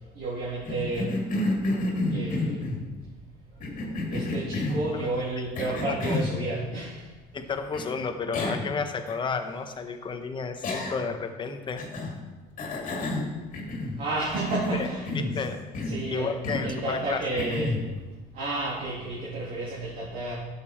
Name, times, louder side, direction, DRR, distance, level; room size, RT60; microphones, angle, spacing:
voice 1, 0.0-1.2 2.1-2.7 4.1-7.1 14.0-15.4 15.8-16.3 16.6-17.8 18.3-20.3, right 2 dB, 55° right, -7 dB, 2.7 m, -31 dB
Cough, 0.6-2.8 3.6-4.9 5.5-6.3 7.7-7.8 8.3-8.7 9.1-9.2 10.6-11.2 11.8-12.2 12.6-14.0 14.3-15.4 15.7-16.0 16.4-16.8 17.4-17.9, left 2 dB, 50° left, 2.1 m, -30 dB
voice 2, 7.3-11.8 14.8-14.9 15.3-15.7 16.1-17.2, left 5 dB, 25° left, 7 dB, 0.9 m, -32 dB
12.0 x 6.9 x 4.3 m, 1.2 s
cardioid pair, 135°, 17 cm